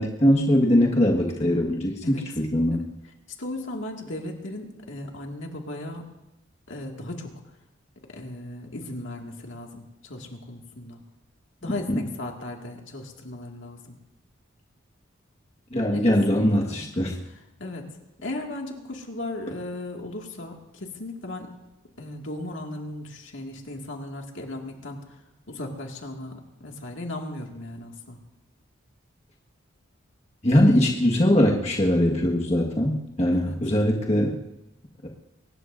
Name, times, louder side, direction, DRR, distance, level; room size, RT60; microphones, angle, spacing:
voice 1, 0.0-2.8 11.9-12.1 15.7-17.2 30.4-34.4 35.0-35.1, left 1 dB, 30° left, -1 dB, 1.7 m, -21 dB
voice 2, 3.4-6.1 6.7-7.3 8.1-11.0 11.6-13.9 15.9-16.1 16.3-16.8 17.6-17.9 18.2-21.5 22.0-25.1 25.5-28.2 33.4-33.6, left 1 dB, 70° left, 1 dB, 2.2 m, -36 dB
23.0 x 19.5 x 2.7 m, 0.93 s
head